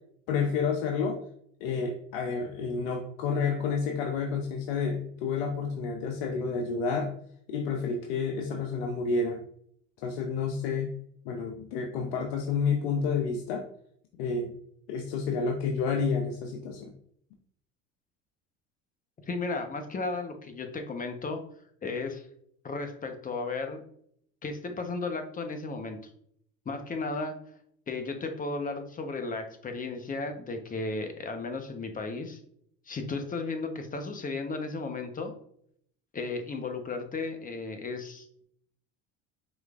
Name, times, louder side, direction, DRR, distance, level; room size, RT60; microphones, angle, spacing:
voice 1, 0.3-1.2 1.6-7.1 7.5-9.4 10.0-11.0 11.3-13.6 14.2-14.5 14.9-16.9, left 5 dB, 80° left, 3 dB, 0.6 m, -30 dB
voice 2, 19.3-21.4 21.8-22.3 22.6-23.8 24.4-26.0 26.7-27.4 27.9-32.4 32.9-35.3 36.1-38.4, left 3 dB, 25° left, 6 dB, 0.9 m, -34 dB
5.1 x 3.2 x 2.4 m, 0.67 s
supercardioid pair, 85°, 30 cm